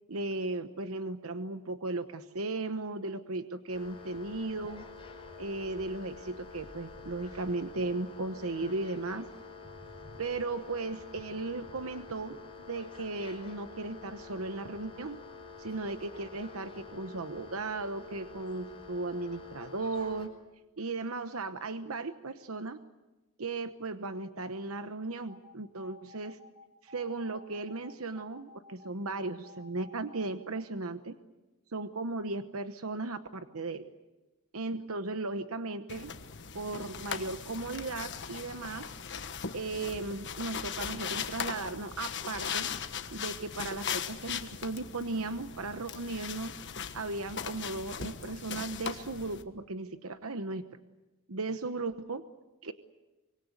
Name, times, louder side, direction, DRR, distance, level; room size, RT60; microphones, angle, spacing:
voice 1, 0.1-4.9 5.4-9.3 10.2-12.4 12.7-15.2 15.6-20.3 20.8-22.8 23.4-26.4 26.8-31.1 31.7-33.9 34.5-36.1 36.5-38.9 39.5-42.7 43.1-46.5 46.9-50.6 51.3-52.2 52.6-52.7, right 3 dB, 70° right, 9 dB, 1.1 m, -36 dB
sound 1, 3.7-20.3, left 4 dB, 25° left, 5.1 m, -48 dB
sound 2, 25.3-30.6, left 2 dB, 25° right, 4.1 m, -54 dB
sound 3, 35.9-49.4, left 7 dB, 55° left, 1.4 m, -39 dB
25.0 x 24.0 x 8.1 m, 1.1 s
head